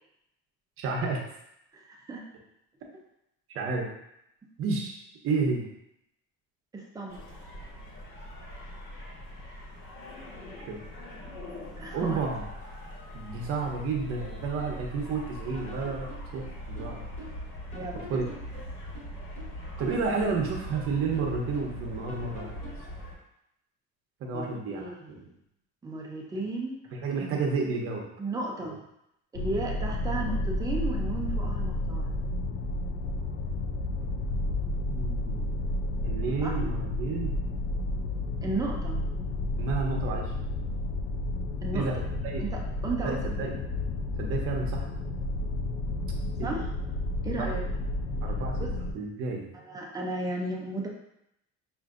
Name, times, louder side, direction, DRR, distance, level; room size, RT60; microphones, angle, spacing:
voice 1, 0.8-1.2 3.5-3.9 4.6-5.0 5.2-5.7 10.7-10.8 11.9-12.4 13.1-17.0 18.1-18.2 19.8-22.6 24.2-24.8 26.9-28.0 34.9-35.7 36.0-37.3 39.6-40.3 41.7-42.0 42.2-42.4 42.9-43.6 44.2-44.9 46.4-46.5 47.4-47.5 48.2-48.6 48.9-49.4, right 4 dB, 50° right, 0 dB, 0.8 m, -31 dB
voice 2, 1.7-2.2 6.7-7.2 11.8-12.2 17.7-18.0 24.3-25.3 25.8-26.8 27.2-27.4 28.2-28.8 29.3-32.1 36.4-36.5 38.4-39.0 41.6-41.9 42.4-43.5 46.4-46.7 47.2-47.6 49.5-50.9, right 2 dB, 15° right, -1 dB, 0.4 m, -34 dB
sound 1, 7.1-23.1, equal, 75° left, 1.4 m, -41 dB
sound 2, 14.2-15.2 15.5-17.5 17.7-19.6 19.9-21.8 22.1-22.9, left 1 dB, 25° left, 0.8 m, -47 dB
sound 3, 29.3-48.9, left 2 dB, 50° left, 0.4 m, -31 dB
5.7 x 2.6 x 2.5 m, 0.80 s
cardioid pair, 170°, 29 cm